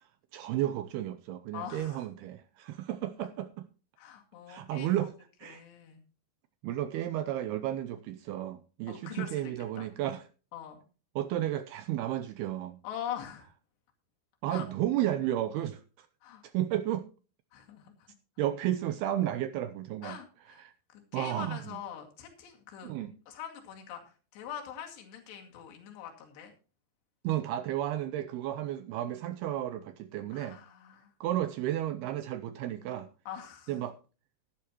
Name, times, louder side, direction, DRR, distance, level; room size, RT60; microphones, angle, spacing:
voice 1, 0.0-3.7 4.5-5.1 5.4-5.6 6.6-10.2 11.2-12.8 14.4-16.1 16.4-17.1 18.4-20.2 20.6-20.7 21.1-21.8 22.8-23.1 27.2-30.6 31.2-33.1 33.7-34.0, right 12 dB, 80° right, 2.3 m, -33 dB
voice 2, 1.5-2.0 4.0-5.1 5.4-6.0 8.9-9.4 9.8-9.9 10.5-10.8 12.8-13.5 14.5-14.6 16.2-16.4 17.5-18.1 20.0-20.6 20.9-22.9 23.3-26.5 30.3-31.1 33.3-33.8, left 9 dB, 70° left, 4.3 m, -43 dB
15.0 x 11.5 x 3.0 m
omnidirectional pair, 5.1 m